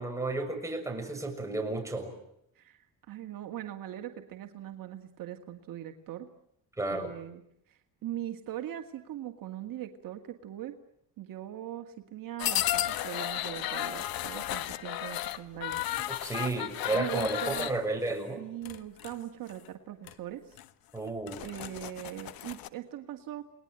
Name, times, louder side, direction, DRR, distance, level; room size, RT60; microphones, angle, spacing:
voice 1, 0.0-2.1 6.8-7.1 16.2-18.4 20.9-21.4, right 2 dB, 10° right, 2 dB, 6.8 m, -32 dB
voice 2, 2.6-6.3 6.9-7.4 7.7-10.8 11.2-16.3 16.9-17.7 18.4-20.6 21.4-23.4, right 12 dB, 65° right, 5 dB, 2.2 m, -41 dB
sound 1, 12.4-17.8 18.6-19.1 19.5-19.7 20.1-20.2 20.6-20.7 21.1-22.7, left 13 dB, 75° left, 1.4 m, -34 dB
29.5 x 20.0 x 9.1 m, 0.75 s
cardioid pair, 110°, 36 cm